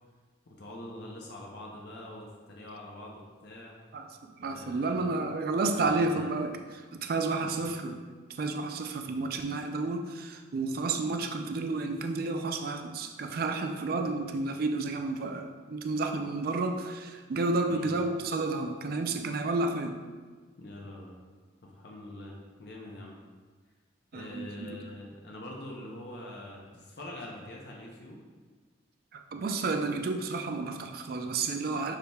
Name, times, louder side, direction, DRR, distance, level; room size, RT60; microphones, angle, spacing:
voice 1, 0.5-3.8 4.4-5.2 5.7-6.4 7.4-7.7 17.7-17.9 20.6-21.2 21.7-23.1 24.1-28.2, left 1 dB, 60° left, -2 dB, 0.6 m, -44 dB
voice 2, 3.9-8.0 8.3-20.0 24.1-24.9 29.1-32.0, right 3 dB, 50° right, 5 dB, 0.4 m, -31 dB
6.5 x 3.4 x 2.2 m, 1.4 s
head